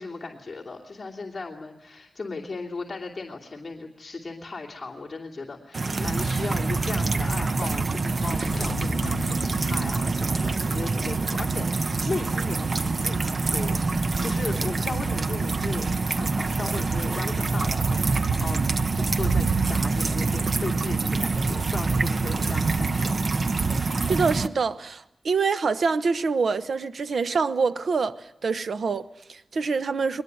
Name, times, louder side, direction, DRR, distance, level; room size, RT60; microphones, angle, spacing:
voice 1, 0.0-18.6 18.9-23.2, left 3 dB, 35° left, 2.9 m, -36 dB
sound 1, 5.7-24.5, right 3 dB, 50° right, 0.9 m, -25 dB
sound 2, 8.3-11.1 11.3-11.4, left 5 dB, 70° left, 1.2 m, -39 dB
voice 2, 24.1-30.2, right 4 dB, 75° right, 1.0 m, -26 dB
22.0 x 20.5 x 9.4 m
wide cardioid pair, 110°, 0 cm